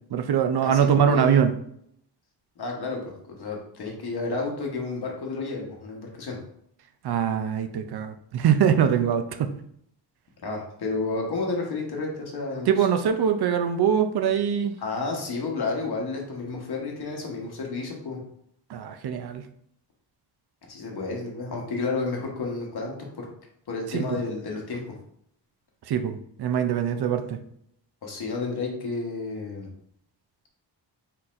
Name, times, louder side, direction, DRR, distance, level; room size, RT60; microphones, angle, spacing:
voice 1, 0.1-1.5 7.0-9.5 12.7-14.7 18.7-19.4 23.9-24.2 25.9-27.4, right 8 dB, 60° right, 8 dB, 0.5 m, -23 dB
voice 2, 0.6-1.2 2.6-6.4 10.4-12.8 14.8-18.2 20.7-23.3 23.7-24.9 28.0-29.7, left 3 dB, 60° left, 0 dB, 1.2 m, -31 dB
4.2 x 4.0 x 2.5 m, 0.69 s
wide cardioid pair, 135°, 44 cm